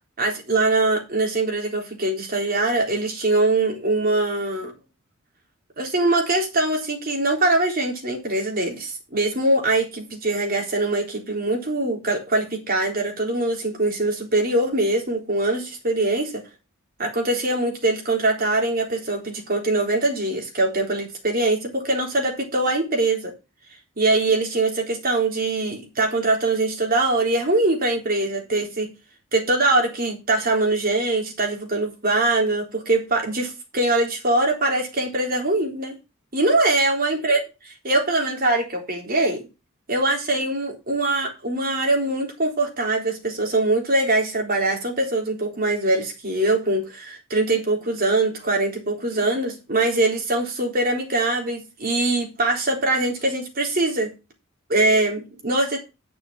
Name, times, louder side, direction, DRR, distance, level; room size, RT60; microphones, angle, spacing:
voice 1, 0.2-4.7 5.8-16.3 17.0-23.3 24.0-28.9 29.3-36.0 36.3-37.4 37.8-39.4 39.9-54.1 54.7-55.8, right 2 dB, 45° right, 1 dB, 3.8 m, -22 dB
9.9 x 6.8 x 6.0 m, 0.28 s
head